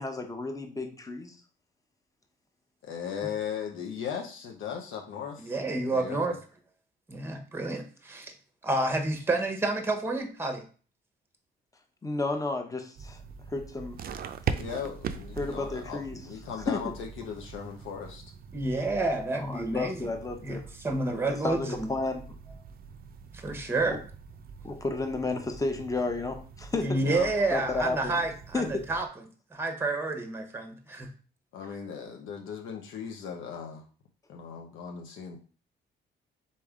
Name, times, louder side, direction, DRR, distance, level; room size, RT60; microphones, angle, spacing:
voice 1, 0.0-1.4 12.0-13.2 13.5-14.0 15.4-16.2 16.7-16.8 19.4-20.6 21.2-22.2 23.8-24.0 24.6-27.0 27.5-28.2 28.5-28.8, left 3 dB, 15° left, 5 dB, 0.9 m, -32 dB
voice 2, 2.8-5.5 5.9-6.4 14.5-18.2 26.9-27.3 31.5-33.8 34.3-35.4, left 7 dB, 80° left, 1 dB, 0.8 m, -37 dB
voice 3, 5.4-6.3 7.1-8.3 8.6-10.6 18.5-20.1 20.4-21.9 23.3-24.0 26.8-29.1 29.5-31.1, right 2 dB, 10° right, 6 dB, 0.9 m, -29 dB
sound 1, 12.9-29.1, right 6 dB, 50° right, 0.4 m, -42 dB
4.1 x 3.3 x 3.6 m, 0.38 s
cardioid pair, 90°, 20 cm